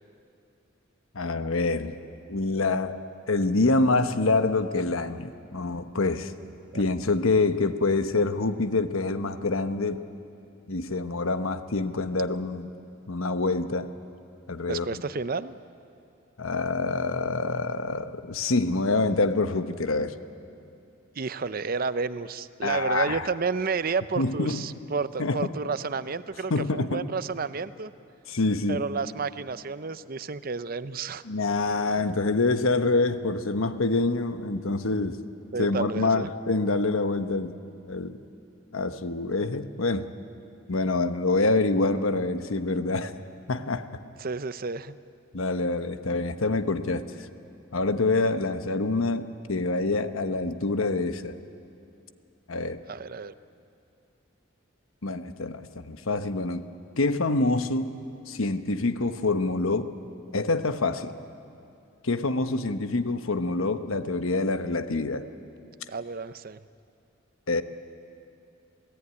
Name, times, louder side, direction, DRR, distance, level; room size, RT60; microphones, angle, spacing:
voice 1, 1.1-2.0 2.3-3.0 3.3-6.3 6.7-10.0 10.7-12.7 13.1-13.9 14.5-15.0 16.4-20.1 22.6-23.3 24.2-24.7 25.2-25.5 26.5-27.1 28.3-28.8 31.2-35.2 35.6-37.5 37.9-38.2 38.7-40.1 40.7-43.1 43.5-43.9 45.3-47.1 47.7-51.4 52.5-52.8 55.0-56.7 57.0-57.9 58.3-59.9 60.3-61.1 62.0-65.3 67.5-67.6, left 3 dB, 80° left, 10 dB, 1.1 m, -26 dB
voice 2, 14.7-15.6 21.2-27.9 28.7-31.2 35.5-36.3 44.2-44.9 52.9-53.3 65.9-66.6, right 4 dB, 45° right, 14 dB, 0.6 m, -31 dB
27.5 x 17.5 x 9.7 m, 2.6 s
head